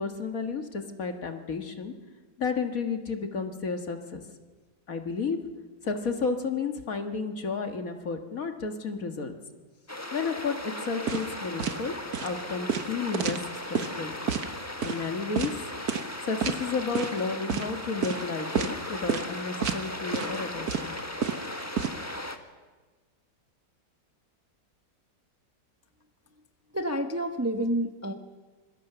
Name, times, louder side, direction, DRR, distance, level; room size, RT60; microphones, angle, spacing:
voice 1, 0.0-1.9 2.4-4.2 4.9-5.4 5.8-9.3 10.1-11.9 12.2-13.4 13.7-14.2 14.8-15.5 16.2-21.0 21.3-21.4, left 5 dB, 50° left, 5 dB, 2.0 m, -32 dB
sound 1, 9.9-22.4, left 1 dB, 10° left, 1.2 m, -37 dB
sound 2, 11.1-11.3 11.6-11.8 12.1-12.3 12.7-13.9 14.3-14.5 14.8-15.0 15.4-15.5 15.9-16.1 16.4-16.6 16.9-17.2 17.5-17.7 18.0-18.2 18.6-18.8 19.1-19.3 19.6-19.8 20.1-20.4 20.7-21.9, right 7 dB, 55° right, 1.5 m, -29 dB
voice 2, 26.7-28.1, right 1 dB, 10° right, 6 dB, 0.8 m, -29 dB
26.5 x 22.0 x 6.9 m, 1.3 s
omnidirectional pair, 2.0 m